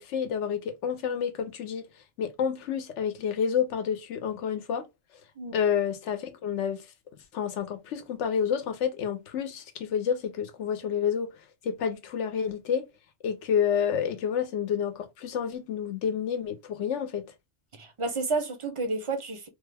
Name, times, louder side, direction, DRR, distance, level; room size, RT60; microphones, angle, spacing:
voice 1, 0.0-1.8 2.2-4.9 5.5-6.8 7.3-11.3 11.6-12.9 13.2-17.2, left 7 dB, 85° left, 1.0 m, -29 dB
voice 2, 17.8-19.5, right 3 dB, 40° right, 0.5 m, -30 dB
3.1 x 2.2 x 3.3 m
omnidirectional pair, 1.2 m